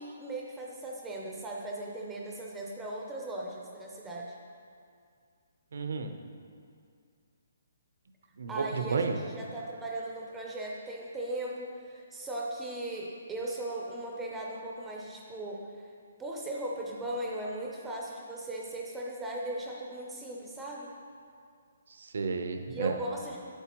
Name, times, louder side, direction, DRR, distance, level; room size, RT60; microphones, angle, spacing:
voice 1, 0.0-4.3 8.5-15.9 16.2-20.9 22.7-23.5, right 1 dB, 5° right, -2 dB, 0.5 m, -38 dB
voice 2, 5.7-6.1 8.4-9.2 22.0-22.9, right 4 dB, 70° right, 6 dB, 0.7 m, -32 dB
8.1 x 7.8 x 3.0 m, 2.3 s
hypercardioid pair, 165°, 0 cm